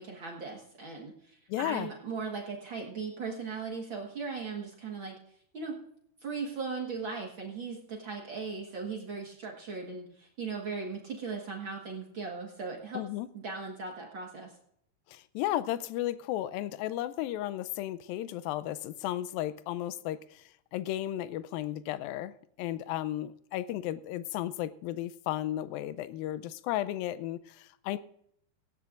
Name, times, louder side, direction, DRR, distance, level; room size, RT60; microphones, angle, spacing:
voice 1, 0.0-5.2 5.5-5.8 6.2-13.0 13.3-14.5, right 4 dB, 75° right, 1.1 m, -38 dB
voice 2, 1.5-1.9 12.9-13.3 15.1-28.0, left 13 dB, 85° left, 2.1 m, -34 dB
18.0 x 15.0 x 2.5 m
omnidirectional pair, 4.7 m